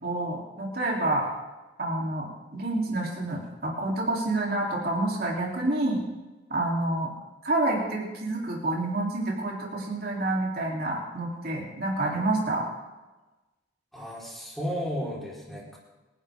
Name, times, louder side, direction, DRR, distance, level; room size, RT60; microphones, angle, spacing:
voice 1, 0.0-1.3 1.8-6.0 6.5-7.1 7.4-12.7, right 2 dB, 55° right, -3 dB, 3.6 m, -28 dB
voice 2, 13.9-15.8, equal, ahead, -6 dB, 4.6 m, -33 dB
27.0 x 11.5 x 3.8 m, 1.1 s
head